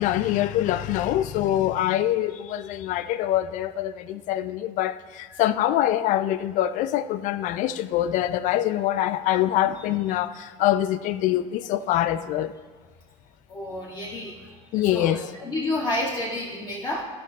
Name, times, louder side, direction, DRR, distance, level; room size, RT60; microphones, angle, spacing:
voice 1, 0.0-12.5 14.7-15.2, left 13 dB, 60° left, 13 dB, 0.4 m, -24 dB
voice 2, 13.5-17.0, left 1 dB, 30° left, -5 dB, 1.7 m, -30 dB
13.0 x 4.7 x 3.6 m, 1.4 s
supercardioid pair, 95°, 15 cm